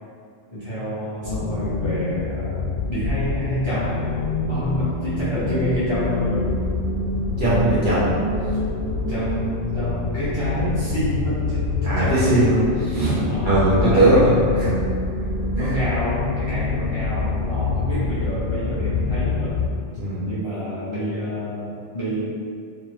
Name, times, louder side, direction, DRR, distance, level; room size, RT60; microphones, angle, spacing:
voice 1, 0.5-6.5 9.1-9.4 9.7-12.6 13.3-14.3 15.6-19.5 20.2-22.2, equal, 30° left, -13 dB, 0.6 m, -28 dB
sound 1, 1.2-19.7, left 3 dB, 90° left, 1.0 m, -26 dB
voice 2, 7.4-8.1 11.8-14.7 15.6-15.8 20.0-20.3, right 1 dB, 45° right, -11 dB, 0.9 m, -19 dB
2.7 x 2.4 x 3.1 m, 2.3 s
omnidirectional pair, 1.3 m